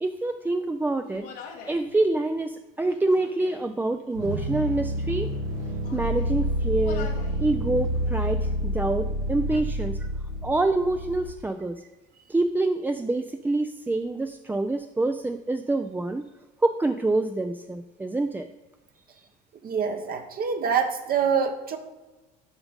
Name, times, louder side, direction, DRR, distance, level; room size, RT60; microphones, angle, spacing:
voice 1, 0.0-1.3 1.7-5.3 5.9-7.1 7.4-10.0 10.4-11.8 12.3-16.2 16.6-18.5, right 2 dB, 10° right, 6 dB, 0.4 m, -26 dB
Human voice, 1.0-1.9 2.8-3.7 4.1-4.8 5.5-6.4 6.8-7.4 7.7-8.4, left 4 dB, 80° left, 1.5 m, -44 dB
sound 1, 4.1-11.4, equal, 85° right, 1.4 m, -29 dB
voice 2, 19.6-21.8, right 6 dB, 45° right, 6 dB, 0.9 m, -25 dB
7.3 x 4.9 x 5.2 m, 1.2 s
supercardioid pair, 85°, 21 cm